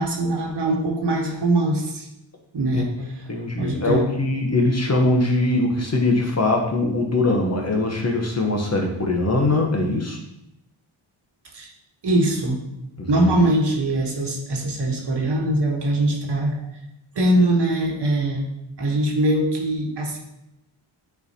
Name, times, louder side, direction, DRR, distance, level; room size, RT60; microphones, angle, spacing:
voice 1, 0.0-2.1 2.5-3.3 3.6-4.0 11.5-11.7 12.0-12.6 13.1-16.7 17.1-18.5 18.8-20.2, right 1 dB, 55° right, 1 dB, 1.3 m, -22 dB
voice 2, 3.3-10.2 13.0-13.3, left 2 dB, 30° left, 1 dB, 0.9 m, -21 dB
9.6 x 4.3 x 2.8 m, 0.84 s
wide cardioid pair, 135°, 50 cm